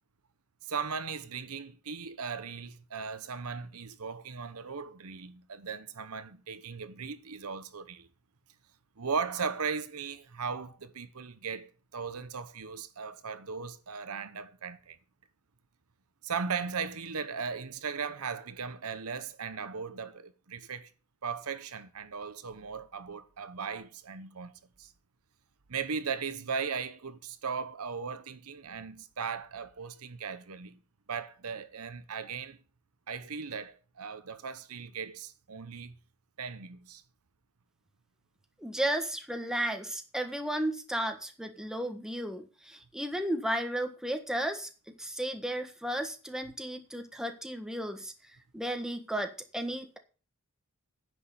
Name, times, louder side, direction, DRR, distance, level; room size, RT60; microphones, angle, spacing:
voice 1, 0.7-8.1 9.0-15.0 16.2-20.9 21.2-24.5 24.8-24.9 25.7-30.8 31.1-32.6 33.1-36.0 36.4-37.0, right 5 dB, 75° right, 0.9 m, -37 dB
voice 2, 38.6-48.1 48.5-50.0, right 1 dB, 5° right, 1.5 m, -34 dB
10.0 x 6.3 x 7.8 m
head